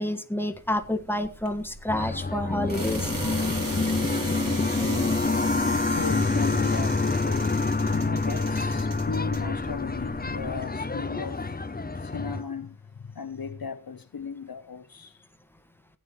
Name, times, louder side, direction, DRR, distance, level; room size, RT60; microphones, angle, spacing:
voice 1, 0.0-3.1, left 1 dB, 5° left, 1.5 m, -29 dB
sound 1, 0.5-10.6, right 1 dB, 60° right, 3.9 m, -37 dB
sound 2, 1.9-12.4, left 3 dB, 25° left, 0.7 m, -27 dB
voice 2, 2.7-3.7 5.9-15.2, left 5 dB, 70° left, 0.8 m, -37 dB
16.5 x 9.3 x 3.1 m
wide cardioid pair, 45°, 36 cm